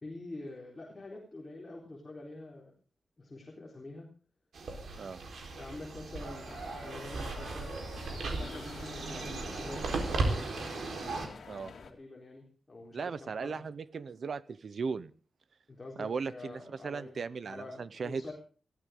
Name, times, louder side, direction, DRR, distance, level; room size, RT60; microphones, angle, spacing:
voice 1, 0.0-2.7 3.2-4.1 5.5-10.5 11.8-13.6 15.7-17.2 17.5-18.3, left 2 dB, 25° left, -2 dB, 4.1 m, -46 dB
sound 1, 4.5-11.3, right 3 dB, 85° right, 4.3 m, -36 dB
sound 2, 6.5-11.9, left 5 dB, 85° left, 2.4 m, -49 dB
voice 2, 12.9-15.1 16.0-18.2, right 5 dB, 55° right, 16 dB, 0.8 m, -37 dB
21.5 x 15.5 x 3.8 m, 0.39 s
wide cardioid pair, 180°, 0 cm